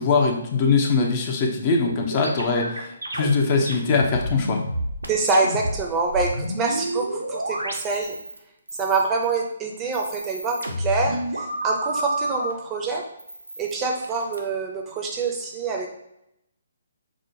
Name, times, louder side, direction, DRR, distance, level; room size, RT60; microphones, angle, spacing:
voice 1, 0.0-4.6, left 4 dB, 35° left, 2 dB, 0.6 m, -22 dB
sound 1, 1.9-5.8 6.1-8.4 8.7-9.3 9.8-12.5 13.2-14.4, right 1 dB, 90° right, 0.6 m, -30 dB
voice 2, 5.1-8.1 8.8-13.0 13.6-15.9, right 4 dB, 20° right, 0 dB, 0.5 m, -25 dB
4.8 x 2.2 x 2.6 m, 0.80 s
figure-of-eight pair, 140°, 0 cm